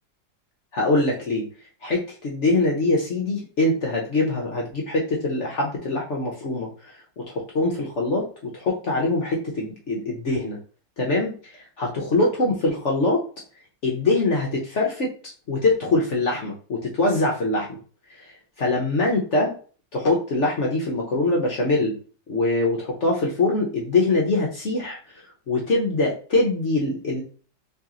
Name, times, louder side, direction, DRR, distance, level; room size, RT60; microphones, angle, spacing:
voice 1, 0.7-1.5 1.8-10.6 11.0-13.3 13.8-15.1 15.5-17.8 18.2-18.3 18.6-19.5 19.9-21.9 22.3-25.0 25.5-27.2, left 2 dB, 55° left, -2 dB, 0.8 m, -23 dB
3.2 x 2.9 x 3.7 m, 0.39 s
omnidirectional pair, 2.0 m